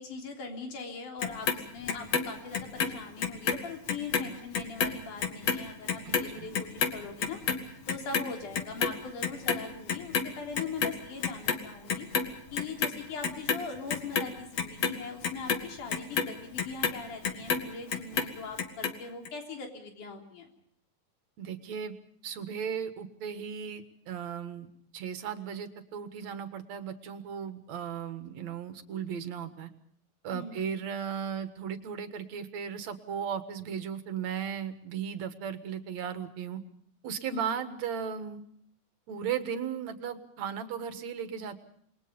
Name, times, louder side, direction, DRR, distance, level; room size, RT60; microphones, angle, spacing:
voice 1, 0.0-7.4 7.9-12.1 12.5-20.5 30.3-30.7 37.3-37.7, left 4 dB, 85° left, 3 dB, 5.0 m, -41 dB
Clock, 1.2-3.6 3.9-10.3 10.5-11.6 11.9-12.9 13.2-17.6 17.9-18.9 19.3-19.4, left 6 dB, 60° left, 2.8 m, -30 dB
voice 2, 21.4-21.9 22.2-24.7 24.9-29.7 30.2-36.6 37.0-38.4 39.1-41.6, right 7 dB, 65° right, 10 dB, 2.8 m, -36 dB
28.5 x 22.0 x 5.3 m, 0.66 s
omnidirectional pair, 3.5 m